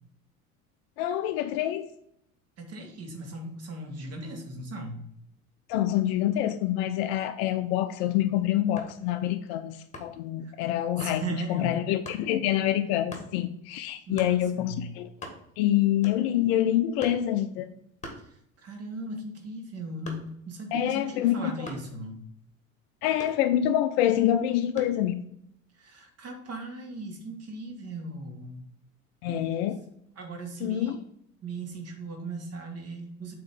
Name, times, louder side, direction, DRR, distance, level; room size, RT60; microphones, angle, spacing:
voice 1, 1.0-1.9 5.7-15.1 15.6-17.7 20.7-21.5 23.0-25.2 29.2-29.8 30.6-31.0, left 12 dB, 45° left, 0.6 m, -26 dB
voice 2, 2.6-5.0 10.4-10.5 11.0-11.8 14.1-14.9 18.2-22.2 25.7-28.7 29.3-29.4 30.2-31.0 31.4-33.3, right 2 dB, 35° right, 1.7 m, -38 dB
sound 1, 8.8-9.1 9.9-10.3 11.0-11.2 12.1-12.3 13.1-13.3 14.2-14.4 14.8-14.9 15.1-15.7 16.0-16.4 17.0-17.3 18.0-18.8 19.1-20.5 21.6-22.0 23.2-23.9 24.8-25.1, left 1 dB, 15° left, 1.7 m, -43 dB
8.1 x 3.2 x 5.4 m
figure-of-eight pair, 75°, 42 cm